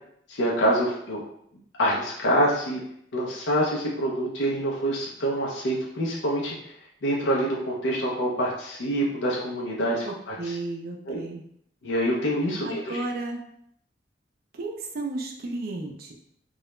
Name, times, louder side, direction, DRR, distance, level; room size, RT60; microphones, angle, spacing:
voice 1, 0.3-1.2 1.8-2.8 3.1-6.7 7.0-10.6 11.1-11.2 11.8-13.0, equal, 75° left, -4 dB, 0.5 m, -26 dB
voice 2, 10.0-11.4 12.6-13.4 14.5-16.1, right 2 dB, 55° right, 1 dB, 0.4 m, -33 dB
2.3 x 2.0 x 3.0 m, 0.70 s
head